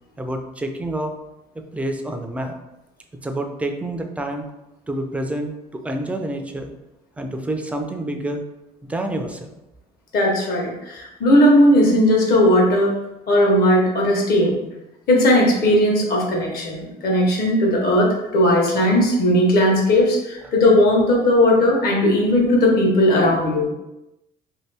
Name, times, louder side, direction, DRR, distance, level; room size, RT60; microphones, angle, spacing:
voice 1, 0.2-1.1 1.6-2.5 3.2-4.5 4.9-6.7 7.2-8.4 8.8-9.5 20.4-20.5, right 1 dB, 10° right, 4 dB, 0.4 m, -28 dB
voice 2, 10.1-12.9 13.3-14.6 15.1-23.7, left 1 dB, 65° left, -2 dB, 1.1 m, -17 dB
2.7 x 2.6 x 3.3 m, 0.94 s
cardioid pair, 110°, 17 cm